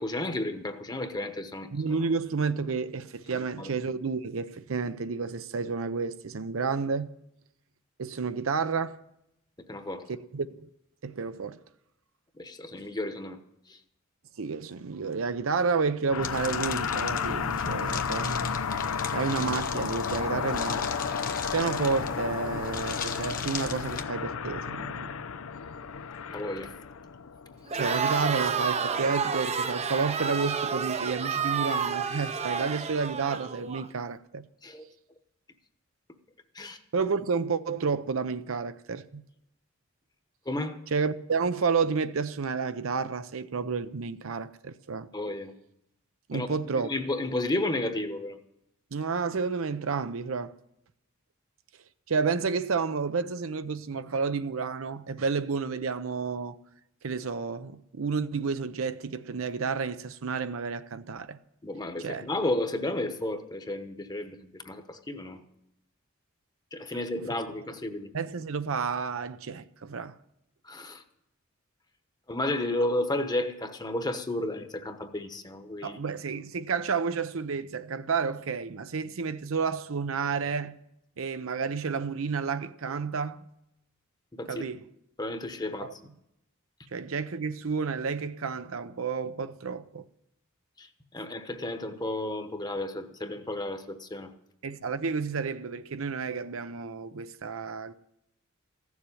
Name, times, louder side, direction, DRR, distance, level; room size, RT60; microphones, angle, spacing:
voice 1, 0.0-1.7 3.3-3.7 9.7-10.0 12.3-13.4 13.7-13.8 26.3-26.7 34.6-34.9 36.5-36.8 40.4-40.8 45.1-45.5 46.3-46.5 46.8-48.4 61.6-65.4 66.7-68.1 70.6-71.0 72.3-76.0 84.4-84.7 85.2-86.0 90.8-94.3, left 1 dB, 20° left, 1.1 m, -32 dB
voice 2, 1.7-7.1 8.0-9.0 10.1-10.7 11.0-11.6 14.4-21.2 21.5-25.1 27.7-34.5 36.9-39.2 40.9-45.1 46.3-46.9 48.9-50.5 52.1-56.6 57.0-61.4 62.0-62.3 68.1-70.1 75.8-80.8 81.2-83.5 84.5-84.8 85.8-85.9 86.9-90.0 94.6-97.9, right 5 dB, 70° right, 0.6 m, -31 dB
sound 1, 16.1-28.8, left 6 dB, 90° left, 0.6 m, -33 dB
sound 2, 16.2-24.0, left 6 dB, 45° left, 1.1 m, -38 dB
Crowd, 27.7-33.8, right 5 dB, 30° right, 0.6 m, -30 dB
15.5 x 7.2 x 9.8 m
head